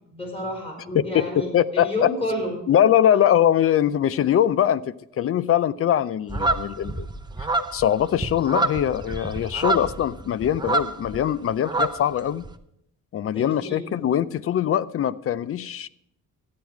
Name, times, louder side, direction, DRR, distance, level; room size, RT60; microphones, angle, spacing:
voice 1, 0.1-2.5 13.3-13.8, left 1 dB, 15° left, 4.3 m, -30 dB
voice 2, 0.9-2.1 2.7-7.1 7.7-12.4 13.1-15.9, left 10 dB, 45° left, 0.5 m, -22 dB
sound 1, 6.3-11.2 11.5-12.5, right 2 dB, 15° right, 0.6 m, -27 dB
13.0 x 9.6 x 4.6 m
cardioid pair, 130°, 33 cm